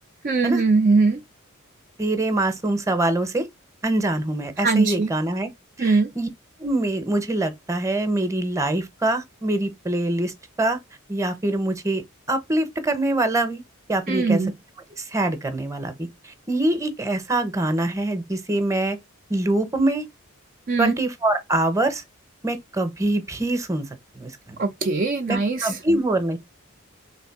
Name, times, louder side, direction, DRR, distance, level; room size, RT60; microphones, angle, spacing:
voice 1, 0.2-1.2 4.6-5.1 5.8-6.1 14.1-14.5 20.7-20.9 24.6-25.7, right 3 dB, 40° right, 0.5 m, -20 dB
voice 2, 2.0-3.5 3.8-5.5 5.8-6.3 6.6-10.8 11.1-13.6 13.9-14.4 15.0-19.0 19.3-20.0 20.8-22.0 22.4-23.9 24.1-24.5 25.3-26.4, right 2 dB, 15° right, 0.8 m, -24 dB
3.4 x 3.2 x 4.6 m
head